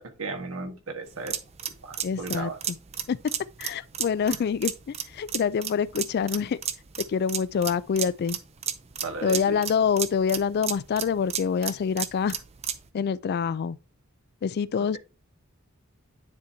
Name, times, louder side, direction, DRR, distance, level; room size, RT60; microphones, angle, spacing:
voice 1, 0.0-1.4 1.8-2.6 4.3-4.4 9.0-9.6 14.7-15.0, right 3 dB, 80° right, 1.3 m, -36 dB
sound 1, 1.1-12.9, right 9 dB, 30° right, 0.6 m, -33 dB
voice 2, 2.0-2.5 3.1-3.2 3.6-6.6 7.1-8.4 9.2-12.4 12.9-13.8 14.4-15.0, left 6 dB, 50° left, 0.3 m, -26 dB
9.7 x 4.4 x 2.7 m
head